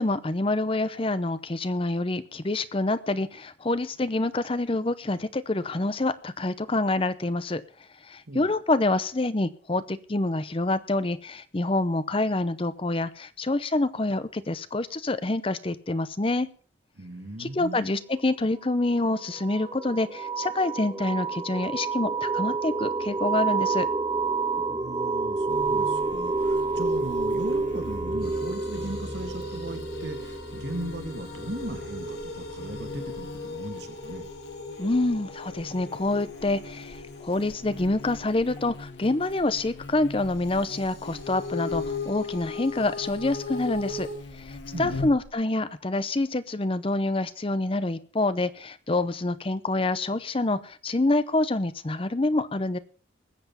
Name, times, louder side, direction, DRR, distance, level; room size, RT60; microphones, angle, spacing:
voice 1, 0.0-7.6 8.0-16.5 17.4-23.9 34.8-44.1 44.3-52.8, left 2 dB, 30° left, 14 dB, 0.7 m, -27 dB
voice 2, 17.0-17.9 24.7-34.2 44.7-45.0, right 1 dB, 65° right, 6 dB, 2.2 m, -38 dB
sound 1, 19.0-33.4, right 4 dB, 15° right, 0.8 m, -29 dB
Buzz, 25.5-45.3, left 3 dB, 80° left, 1.5 m, -43 dB
sound 2, 28.2-39.7 40.4-44.2, left 4 dB, 65° left, 4.3 m, -39 dB
20.0 x 7.8 x 5.6 m, 0.42 s
head